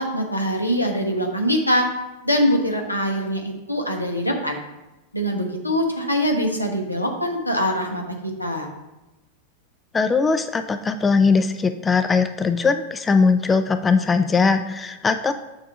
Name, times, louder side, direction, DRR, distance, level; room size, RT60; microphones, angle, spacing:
voice 1, 0.0-1.9 2.2-4.6 5.1-8.7, equal, 85° left, 2 dB, 1.1 m, -23 dB
voice 2, 9.9-15.3, left 4 dB, 15° left, 10 dB, 0.4 m, -20 dB
7.0 x 3.5 x 6.3 m, 1.0 s
figure-of-eight pair, 90°, 0 cm